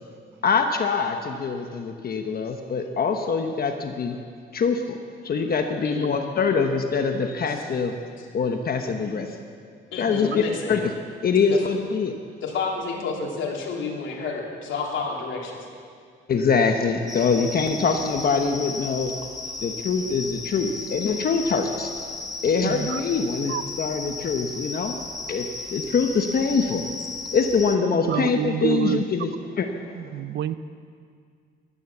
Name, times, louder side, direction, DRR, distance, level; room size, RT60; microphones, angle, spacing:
voice 1, 0.4-4.2 4.5-5.0 5.2-7.9 8.3-9.3 10.0-10.4 10.7-10.9 11.2-12.1 16.3-19.1 19.6-21.9 22.4-25.0 25.3-26.9 27.3-29.3 29.6-29.7, left 5 dB, 50° left, 5 dB, 1.1 m, -24 dB
voice 2, 5.8-6.2 8.2-8.3 9.9-10.8 11.4-11.6 12.4-15.6 19.5-19.6, left 4 dB, 75° left, -1 dB, 3.2 m, -30 dB
sound 1, 17.1-27.8, left 3 dB, 15° left, 1.4 m, -35 dB
voice 3, 22.6-23.0 23.5-23.6 28.1-29.0 29.9-30.5, right 11 dB, 65° right, 14 dB, 0.7 m, -27 dB
15.0 x 13.0 x 7.3 m, 2.2 s
cardioid pair, 90°, 20 cm